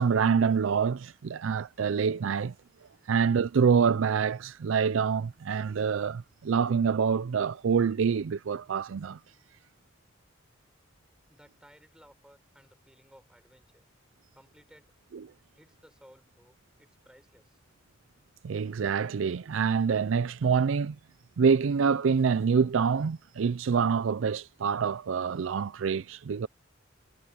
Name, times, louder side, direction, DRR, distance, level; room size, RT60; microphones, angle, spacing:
voice 1, 0.0-2.5 3.1-9.2 18.4-21.0 21.4-26.5, right 6 dB, 70° right, 0.4 m, -26 dB
voice 2, 11.3-13.8 14.3-14.9 15.6-17.6, equal, 5° right, 6.0 m, -58 dB
head